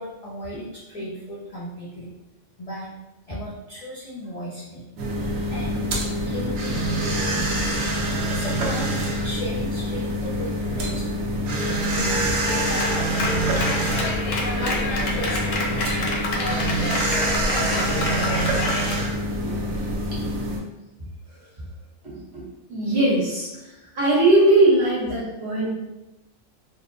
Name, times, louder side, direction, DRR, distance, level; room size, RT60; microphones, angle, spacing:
voice 1, 0.0-2.1 2.6-2.9 3.3-4.8 5.5-5.8 6.2-7.7 8.3-11.1 11.5-13.9 14.6-18.6, equal, 60° left, -7 dB, 0.4 m, -36 dB
sound 1, 5.0-20.6, right 1 dB, 85° right, 1.1 m, -25 dB
Clapping, 12.5-19.0, left 2 dB, 80° left, 1.0 m, -28 dB
voice 2, 22.7-23.5 23.9-25.7, right 2 dB, 55° right, -6 dB, 1.3 m, -19 dB
3.6 x 2.0 x 2.6 m, 0.98 s
omnidirectional pair, 1.3 m